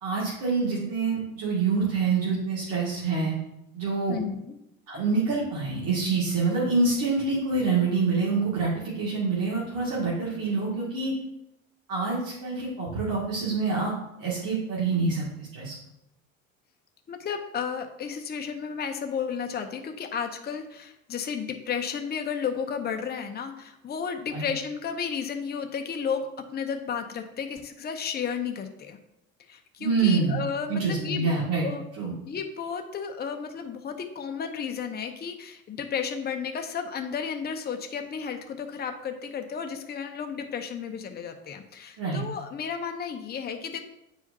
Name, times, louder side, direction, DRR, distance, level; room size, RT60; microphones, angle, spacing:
voice 1, 0.0-3.3 3.7-4.2 4.9-11.1 11.9-13.9 14.2-15.7 24.3-24.4 29.8-30.4 30.7-31.7 32.0-32.1 42.0-42.2, right 4 dB, 55° right, -6 dB, 2.3 m, -26 dB
voice 2, 4.1-4.5 17.1-29.0 29.5-31.3 31.6-31.8 32.3-43.8, left 6 dB, 25° left, 5 dB, 0.8 m, -33 dB
8.8 x 4.8 x 2.7 m, 0.84 s
figure-of-eight pair, 65°, 41 cm